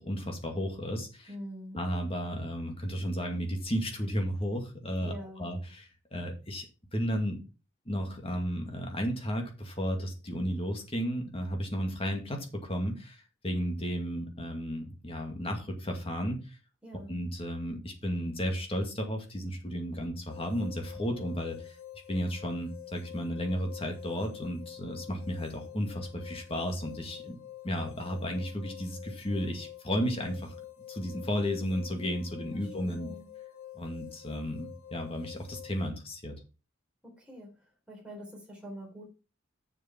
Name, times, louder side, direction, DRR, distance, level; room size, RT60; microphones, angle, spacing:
voice 1, 0.0-1.3 1.7-6.7 6.9-7.4 7.9-16.6 17.1-21.8 22.1-27.4 27.6-30.6 30.9-33.1 33.8-36.4, equal, 25° left, 3 dB, 2.1 m, -33 dB
voice 2, 1.3-1.8 5.0-5.5 16.8-17.2 32.5-33.3 37.0-37.5 37.9-39.1, equal, 5° right, -1 dB, 3.6 m, -45 dB
sound 1, 20.3-35.9, left 12 dB, 75° left, 1.2 m, -48 dB
7.0 x 7.0 x 5.8 m, 0.31 s
head